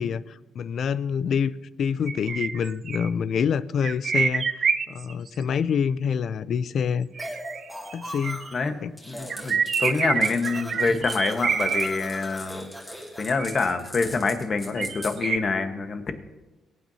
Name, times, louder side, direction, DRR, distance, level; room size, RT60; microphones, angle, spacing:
voice 1, 0.0-1.5 1.8-4.5 4.9-7.1 7.9-8.5 8.8-8.9, left 7 dB, 60° left, 17 dB, 0.5 m, -26 dB
sound 1, 2.1-3.1 3.8-5.3 7.2-8.5 9.3-11.9 13.3-13.9 14.8-15.4, right 6 dB, 50° right, 0.5 m, -27 dB
sound 2, 7.2-8.7 9.0-9.6 9.9-13.5, equal, 5° left, 2.4 m, -39 dB
sound 3, 9.0-15.2, left 1 dB, 20° left, 2.6 m, -41 dB
voice 2, 9.1-12.6 13.2-16.1, left 4 dB, 45° left, 7 dB, 1.3 m, -26 dB
23.0 x 9.1 x 2.8 m, 1.1 s
cardioid pair, 90°, 0 cm